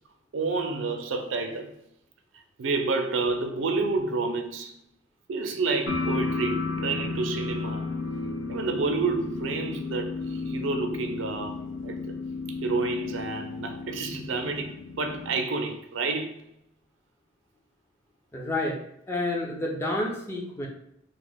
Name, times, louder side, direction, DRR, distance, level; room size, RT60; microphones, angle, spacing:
voice 1, 0.3-1.7 2.6-4.8 5.3-7.9 8.5-12.2 12.6-16.5, right 3 dB, 80° right, 0.4 m, -29 dB
sound 1, 5.9-15.4, left 3 dB, 85° left, 0.5 m, -33 dB
voice 2, 18.3-18.8 19.1-20.7, left 1 dB, 15° left, 0.5 m, -29 dB
2.9 x 2.0 x 3.4 m
head